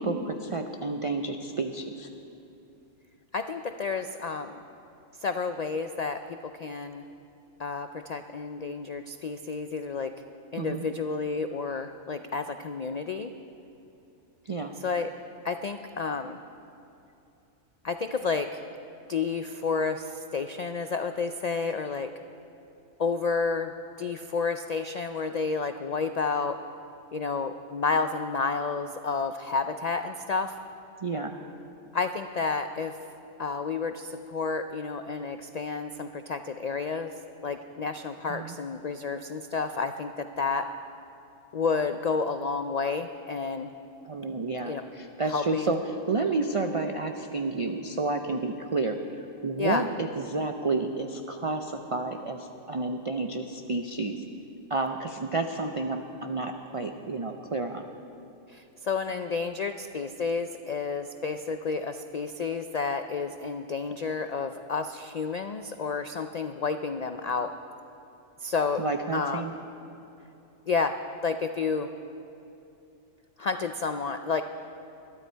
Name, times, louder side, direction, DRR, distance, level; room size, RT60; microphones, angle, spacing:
voice 1, 0.0-2.1 10.6-10.9 14.5-14.7 31.0-31.3 38.3-38.6 44.1-45.8 46.1-49.0 49.4-54.2 54.7-57.8 68.8-69.5, right 3 dB, 40° right, 4 dB, 0.5 m, -30 dB
voice 2, 3.3-4.6 5.2-7.0 7.6-10.1 10.5-13.3 14.8-15.1 15.4-16.4 17.8-18.6 19.1-22.1 23.0-26.6 27.1-30.5 31.9-33.0 33.4-37.1 37.4-40.7 41.5-43.7 44.6-44.8 45.2-45.8 49.6-49.8 58.5-67.5 68.4-68.8 69.1-69.5 70.7-70.9 71.2-71.9 73.4-74.4, left 4 dB, 85° left, 8 dB, 0.3 m, -30 dB
21.5 x 12.5 x 4.5 m, 2.8 s
omnidirectional pair, 1.3 m